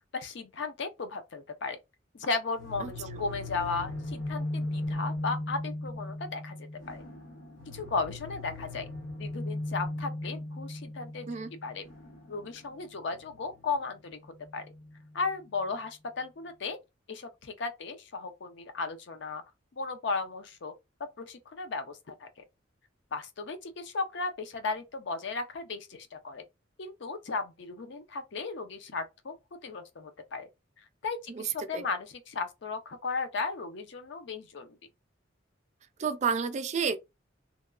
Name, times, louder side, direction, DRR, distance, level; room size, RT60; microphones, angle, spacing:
voice 1, 0.1-1.8 2.1-6.6 6.9-7.0 7.7-8.9 9.2-11.3 11.6-11.8 12.3-14.6 15.1-16.8 17.1-19.4 19.8-20.7 21.2-22.4 23.1-26.4 26.8-29.4 29.6-30.5 31.0-34.8, left 4 dB, 65° left, 0.5 m, -35 dB
sound 1, 2.6-15.3, left 1 dB, 80° left, 0.9 m, -38 dB
voice 2, 2.8-3.2 11.3-11.5 31.3-31.9 36.0-37.0, right 6 dB, 35° right, 0.3 m, -31 dB
2.9 x 2.2 x 2.3 m
head